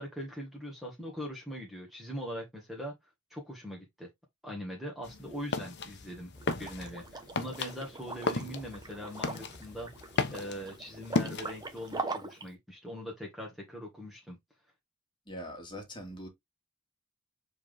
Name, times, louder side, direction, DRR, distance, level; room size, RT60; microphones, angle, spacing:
voice 1, 0.0-2.9 3.3-4.1 4.4-14.4, equal, ahead, 1.6 m, -41 dB
sound 1, 5.0-12.0, left 3 dB, 50° left, 0.9 m, -36 dB
Liquid, 6.4-12.5, right 3 dB, 20° right, 1.0 m, -42 dB
voice 2, 15.3-16.3, equal, 20° left, 2.2 m, -42 dB
7.3 x 3.9 x 3.5 m
head